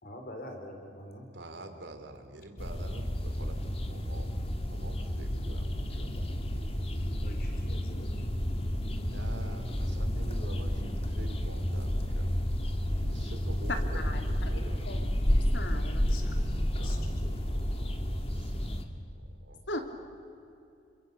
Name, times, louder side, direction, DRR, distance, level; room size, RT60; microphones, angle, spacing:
voice 1, 0.0-1.3 7.2-8.3 16.0-16.5 16.8-17.4 17.9-18.1, left 1 dB, 50° left, 4 dB, 4.2 m, -46 dB
voice 2, 1.3-4.3 4.6-6.2 9.0-12.3 13.0-15.0 16.8-17.9 18.3-18.7 19.1-19.6, right 1 dB, 85° right, 7 dB, 3.1 m, -47 dB
sound 1, 2.6-18.9, equal, 35° left, 1.9 m, -31 dB
voice 3, 14.9-15.3 15.5-16.0 19.7-19.8, left 1 dB, 90° left, 5 dB, 3.3 m, -38 dB
29.0 x 26.0 x 7.0 m, 2.6 s
head